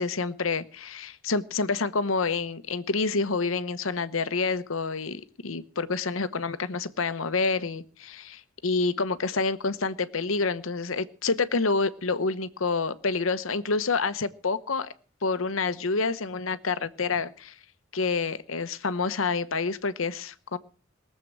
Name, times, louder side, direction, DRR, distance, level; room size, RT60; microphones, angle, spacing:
voice 1, 0.0-14.9 15.2-17.5 17.9-20.6, left 4 dB, 85° left, 14 dB, 1.0 m, -28 dB
19.5 x 7.6 x 7.7 m, 0.41 s
head